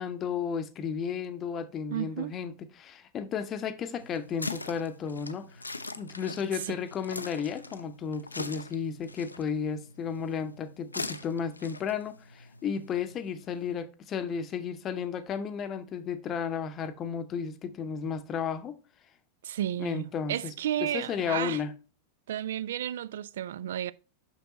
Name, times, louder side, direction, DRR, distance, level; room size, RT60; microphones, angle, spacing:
voice 1, 0.0-5.6 6.0-18.8 19.8-20.5 20.8-21.7, left 7 dB, 30° left, 0.7 m, -33 dB
voice 2, 1.9-2.4 6.5-6.8 19.4-21.6 22.3-23.9, right 11 dB, 60° right, 0.3 m, -33 dB
sound 1, 4.0-13.7, left 3 dB, 80° left, 0.5 m, -42 dB
6.7 x 6.0 x 2.9 m
figure-of-eight pair, 90°, 0 cm